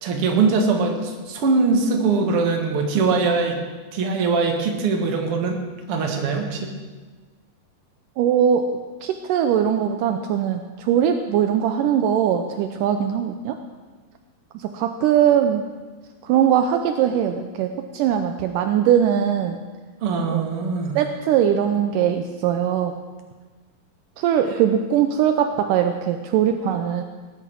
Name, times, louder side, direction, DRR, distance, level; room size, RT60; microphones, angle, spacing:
voice 1, 0.0-3.6 3.9-5.6 5.9-6.7 20.0-21.0, right 4 dB, 50° right, 2 dB, 1.9 m, -22 dB
voice 2, 8.2-8.7 9.0-13.6 14.5-15.6 16.2-19.6 20.3-20.5 21.0-22.9 24.2-27.0, right 9 dB, 85° right, 6 dB, 1.9 m, -21 dB
19.0 x 10.0 x 4.6 m, 1.4 s
omnidirectional pair, 4.4 m